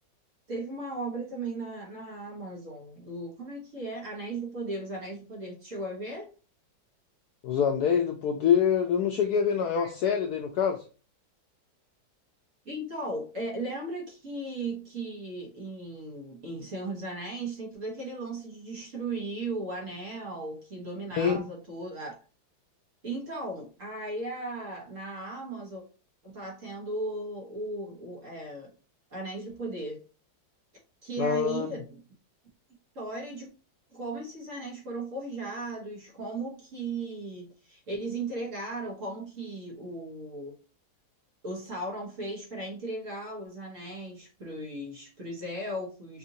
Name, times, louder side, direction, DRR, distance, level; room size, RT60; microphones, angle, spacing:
voice 1, 0.5-6.3 12.6-22.1 23.0-25.8 26.2-28.7 29.1-30.0 31.0-32.0 32.9-33.5 33.9-40.5 41.4-46.2, right 2 dB, 45° right, -2 dB, 1.5 m, -36 dB
voice 2, 7.4-10.8 21.1-21.4 31.2-31.7, left 7 dB, 75° left, 4 dB, 0.9 m, -25 dB
5.5 x 2.6 x 2.7 m, 0.35 s
omnidirectional pair, 2.1 m